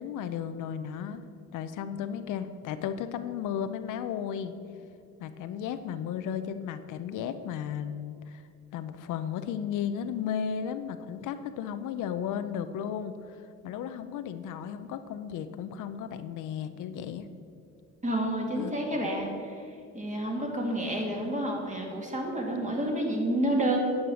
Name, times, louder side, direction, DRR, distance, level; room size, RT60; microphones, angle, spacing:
voice 1, 0.0-4.5 5.2-8.4 8.7-13.4 13.6-17.3 18.5-19.1, left 8 dB, 85° left, 10 dB, 0.7 m, -34 dB
voice 2, 18.0-19.6 19.9-23.8, right 1 dB, 25° right, 0 dB, 2.4 m, -29 dB
9.5 x 7.5 x 6.3 m, 2.4 s
cardioid pair, 90°, 30 cm